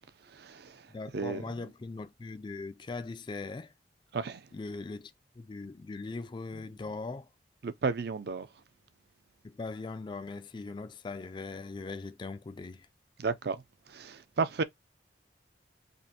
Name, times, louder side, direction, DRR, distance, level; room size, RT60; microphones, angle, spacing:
voice 1, 0.3-0.9 1.1-1.7 4.1-4.5 7.6-8.5 13.2-13.6 13.9-14.6, right 4 dB, 60° right, 0.5 m, -33 dB
voice 2, 0.9-3.7 4.5-7.3 9.4-12.9, left 3 dB, 25° left, 0.3 m, -40 dB
5.1 x 2.5 x 2.8 m
head